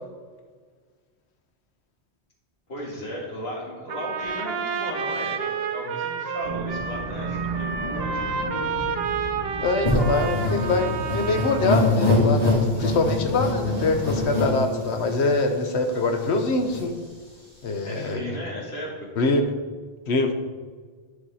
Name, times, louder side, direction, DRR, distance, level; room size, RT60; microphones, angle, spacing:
voice 1, 2.7-8.8 17.8-19.1, left 1 dB, 70° left, -3 dB, 2.3 m, -35 dB
Trumpet, 3.9-12.0, right 6 dB, 70° right, 0.9 m, -30 dB
sound 1, 6.4-14.3, right 3 dB, 45° right, 1.2 m, -34 dB
voice 2, 9.6-17.0 17.6-18.2 19.2-19.4 20.1-20.3, left 3 dB, 90° left, 6 dB, 1.2 m, -24 dB
sound 2, 9.8-15.4 15.9-16.0 16.2-16.8, left 2 dB, 35° left, 2.0 m, -24 dB
11.0 x 4.7 x 4.2 m, 1.5 s
omnidirectional pair, 1.1 m